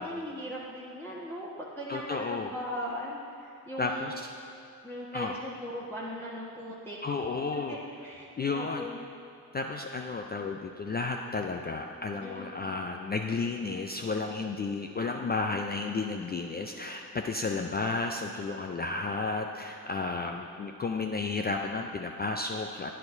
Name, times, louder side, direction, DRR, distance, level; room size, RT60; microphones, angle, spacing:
voice 1, 0.0-4.1 4.8-7.0 7.7-7.8 8.0-9.0 12.2-12.5, equal, 5° left, -6 dB, 1.3 m, -39 dB
voice 2, 1.9-2.5 3.8-4.1 5.1-5.4 7.0-7.8 8.4-8.9 9.5-22.9, left 3 dB, 20° left, 3 dB, 0.4 m, -32 dB
11.5 x 9.5 x 2.7 m, 2.7 s
figure-of-eight pair, 40°, 50 cm